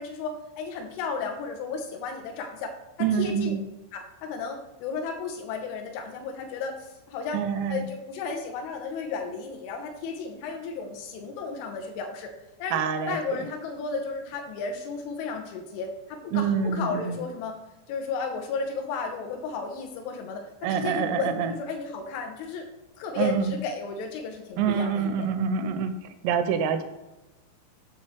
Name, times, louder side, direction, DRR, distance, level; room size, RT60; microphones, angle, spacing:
voice 1, 0.0-2.7 3.1-3.5 3.9-7.4 7.7-12.3 12.6-12.8 13.1-17.6 17.9-22.6 23.0-25.6, left 4 dB, 80° left, 4 dB, 3.2 m, -34 dB
voice 2, 3.0-3.6 7.3-7.9 12.7-13.4 16.3-17.2 20.6-21.5 23.2-23.6 24.6-25.9 26.2-26.8, right 7 dB, 85° right, 8 dB, 3.2 m, -26 dB
8.5 x 7.1 x 3.1 m, 1.0 s
omnidirectional pair, 6.0 m